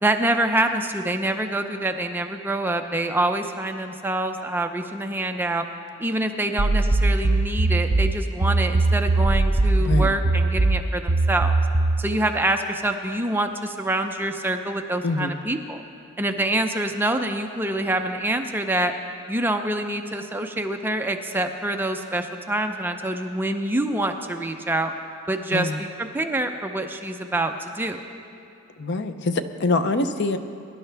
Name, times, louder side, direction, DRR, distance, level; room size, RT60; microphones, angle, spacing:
voice 1, 0.0-5.6 6.0-11.5 12.0-15.8 16.2-18.9 19.3-24.9 25.3-28.0, right 1 dB, 10° right, 5 dB, 0.5 m, -26 dB
sound 1, 6.6-12.1, right 2 dB, 80° right, 0.8 m, -20 dB
voice 2, 9.8-10.1 15.0-15.3 25.5-25.8 28.8-30.4, left 2 dB, 55° left, 9 dB, 0.6 m, -24 dB
23.0 x 11.5 x 3.4 m, 2.8 s
head